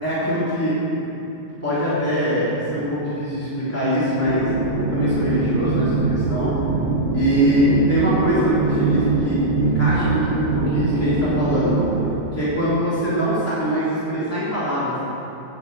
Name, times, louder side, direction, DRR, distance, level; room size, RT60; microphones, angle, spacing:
voice 1, 0.0-0.7 1.0-1.1 1.6-4.5 4.9-6.5 7.1-11.7 12.3-15.0, equal, 5° left, -11 dB, 2.9 m, -22 dB
sound 1, 4.2-12.2, right 4 dB, 40° right, 1.1 m, -23 dB
8.5 x 8.5 x 8.0 m, 2.9 s
omnidirectional pair, 2.0 m